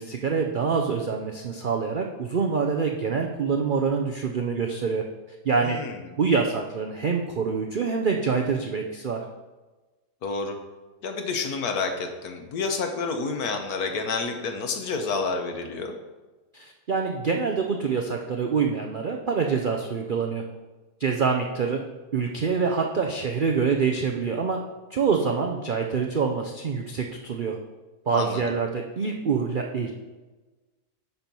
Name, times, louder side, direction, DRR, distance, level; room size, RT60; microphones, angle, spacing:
voice 1, 0.0-5.0 5.4-5.8 6.2-9.2 16.5-20.4 21.0-21.8 22.1-24.6 24.9-27.6 28.1-29.9, right 5 dB, 75° right, 2 dB, 0.4 m, -26 dB
voice 2, 5.6-6.0 10.2-10.6 11.0-15.9 28.1-28.5, left 4 dB, 70° left, 5 dB, 1.5 m, -29 dB
9.7 x 4.5 x 5.3 m, 1.2 s
omnidirectional pair, 1.7 m